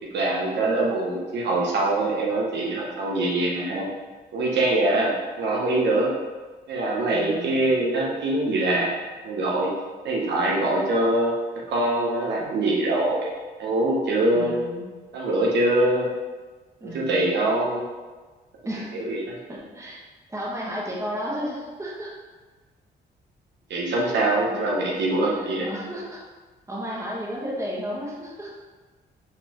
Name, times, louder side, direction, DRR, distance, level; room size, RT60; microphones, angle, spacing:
voice 1, 0.0-3.9 4.3-6.1 6.7-8.9 9.2-9.7 10.0-11.3 11.7-13.3 13.6-14.6 15.1-16.1 16.9-17.8 18.9-19.4 23.7-25.7, right 2 dB, 70° right, -3 dB, 0.9 m, -23 dB
voice 2, 7.1-7.6 14.3-14.8 16.8-17.3 18.6-18.9 19.5-20.0 20.3-22.1 24.0-24.1 24.5-24.7 25.3-26.2 26.7-28.5, equal, 15° right, -4 dB, 1.2 m, -33 dB
4.2 x 4.1 x 2.9 m, 1.3 s
cardioid pair, 85°, 18 cm